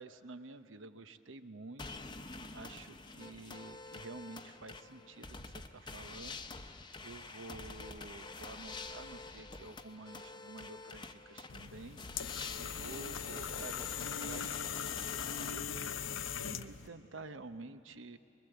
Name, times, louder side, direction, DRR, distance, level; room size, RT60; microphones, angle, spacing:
voice 1, 0.0-1.9 2.5-6.4 7.0-12.0 12.5-15.8 16.4-18.2, right 3 dB, 80° right, 11 dB, 0.9 m, -50 dB
sound 1, 1.8-15.5, left 3 dB, 25° left, 0.8 m, -47 dB
sound 2, 11.5-16.9, left 8 dB, 85° left, 0.6 m, -40 dB
25.0 x 21.5 x 8.0 m, 2.7 s
head